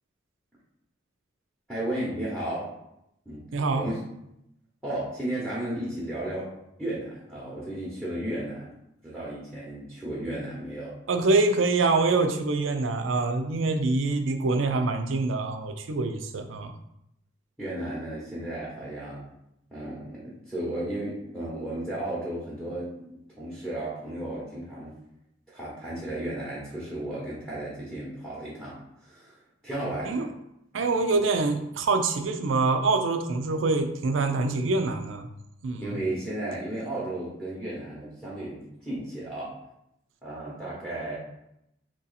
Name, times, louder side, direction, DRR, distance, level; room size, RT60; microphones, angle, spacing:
voice 1, 1.7-2.7 3.3-3.4 3.8-4.0 4.8-6.5 6.8-8.7 9.0-11.0 17.6-19.2 19.7-24.9 25.5-30.2 35.8-39.5 40.2-41.2, right 1 dB, 5° right, -8 dB, 0.9 m, -34 dB
voice 2, 3.5-3.9 11.1-16.7 30.0-30.3 30.7-35.3 35.6-36.0, right 3 dB, 90° right, 6 dB, 0.5 m, -25 dB
3.0 x 2.7 x 4.0 m, 0.81 s
head